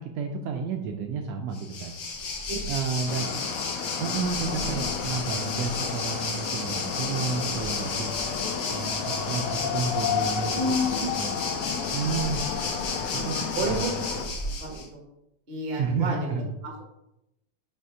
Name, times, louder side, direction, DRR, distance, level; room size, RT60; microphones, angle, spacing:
voice 1, 0.0-2.0 2.7-3.3 4.0-8.1 8.7-10.6 10.9-11.3 11.9-12.4 13.1-13.8 15.8-16.5, right 5 dB, 80° right, 4 dB, 1.5 m, -31 dB
Waves surf, 1.5-14.9, left 4 dB, 60° left, 1.3 m, -33 dB
voice 2, 2.9-3.3 4.4-4.8 10.5-11.1 13.1-13.9 14.4-15.0 15.5-16.2 16.6-16.9, equal, 50° right, -1 dB, 0.6 m, -31 dB
sound 1, 3.1-14.3, left 7 dB, 85° left, 2.1 m, -32 dB
6.8 x 3.5 x 4.8 m, 0.86 s
omnidirectional pair, 3.4 m